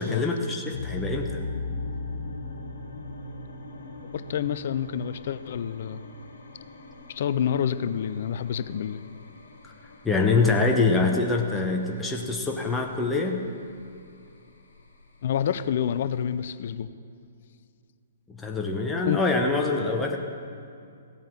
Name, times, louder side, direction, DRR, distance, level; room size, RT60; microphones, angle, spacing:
voice 1, 0.0-1.4 9.6-9.7 10.0-13.4 18.3-20.2, left 3 dB, 10° left, 1 dB, 1.1 m, -25 dB
sound 1, 0.7-16.4, left 3 dB, 65° left, 2.0 m, -40 dB
voice 2, 4.1-6.0 7.1-9.0 15.2-16.9 19.1-19.2, left 9 dB, 50° left, 14 dB, 0.5 m, -28 dB
15.5 x 8.7 x 7.3 m, 2.4 s
figure-of-eight pair, 120°, 0 cm